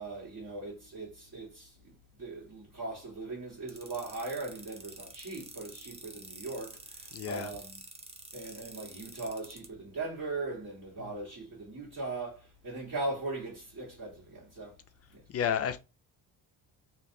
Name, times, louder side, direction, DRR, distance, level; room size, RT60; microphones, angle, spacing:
voice 1, 0.0-1.9 2.2-7.8 8.3-14.8 15.1-15.2, right 2 dB, 45° right, 1.7 m, -39 dB
sound 1, 3.7-9.7, right 3 dB, 15° right, 0.6 m, -47 dB
voice 2, 7.1-7.5 11.0-11.1 15.3-15.8, left 8 dB, 40° left, 0.5 m, -31 dB
3.2 x 2.5 x 2.7 m
cardioid pair, 110°, 37 cm